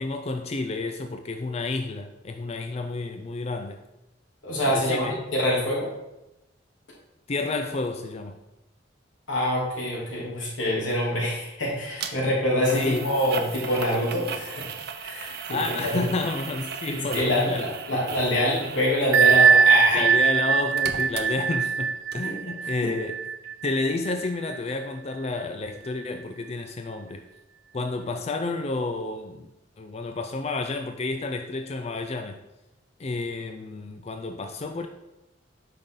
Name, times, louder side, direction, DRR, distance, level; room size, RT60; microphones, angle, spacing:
voice 1, 0.0-3.8 4.7-5.2 7.3-8.4 12.7-13.1 15.5-18.0 19.9-23.2 23.6-27.2 27.7-29.5 29.8-32.4 33.0-34.9, left 3 dB, 35° left, 0.4 m, -30 dB
voice 2, 4.4-5.9 9.3-14.6 15.0-15.3 15.9-16.0 17.1-20.1 22.2-22.3 22.8-22.9, left 1 dB, 85° left, 2.9 m, -25 dB
sound 1, 12.0-12.1 12.6-20.1 20.4-21.8 22.1-22.2, right 6 dB, 55° right, 0.7 m, -36 dB
Bell, 19.1-24.6, right 6 dB, 90° right, 0.4 m, -21 dB
8.9 x 5.6 x 3.8 m
head